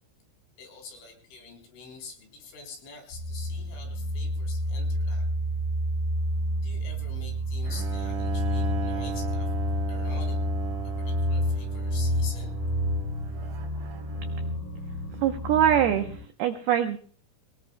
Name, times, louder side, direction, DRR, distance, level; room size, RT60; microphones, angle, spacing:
voice 1, 0.6-5.2 6.6-9.5 9.9-10.4 11.0-12.6, left 4 dB, 70° left, 2 dB, 6.1 m, -46 dB
sound 1, 3.1-16.2, equal, 50° left, 6.5 m, -29 dB
Bowed string instrument, 7.6-14.7, right 5 dB, 65° right, 4.6 m, -38 dB
voice 2, 15.2-16.1 16.4-17.0, right 10 dB, 90° right, 6 dB, 2.2 m, -22 dB
23.0 x 19.0 x 2.2 m, 0.43 s
omnidirectional pair, 5.8 m